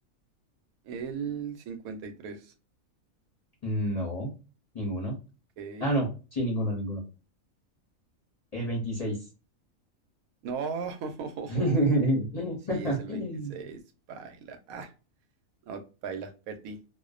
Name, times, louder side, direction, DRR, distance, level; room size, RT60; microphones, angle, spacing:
voice 1, 0.8-2.5 5.6-5.9 10.4-11.9 12.7-13.2 13.5-13.8 14.1-14.9 15.7-16.8, right 6 dB, 85° right, 1.0 m, -37 dB
voice 2, 3.6-4.3 4.7-5.2 5.8-7.0 8.5-9.2 11.5-13.5, right 1 dB, 40° left, 0.5 m, -28 dB
2.5 x 2.1 x 2.4 m
omnidirectional pair, 1.5 m